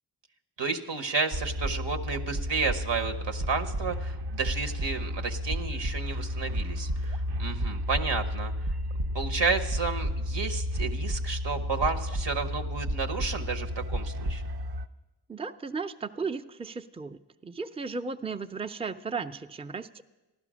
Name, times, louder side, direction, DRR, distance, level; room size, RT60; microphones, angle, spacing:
voice 1, 0.6-8.5 9.1-14.4, right 4 dB, 85° right, 6 dB, 1.1 m, -31 dB
sound 1, 1.3-14.9, equal, 65° right, 0.6 m, -32 dB
voice 2, 15.3-20.0, right 4 dB, 15° right, 9 dB, 0.5 m, -35 dB
15.0 x 11.5 x 6.2 m, 1.1 s
wide cardioid pair, 55°, 42 cm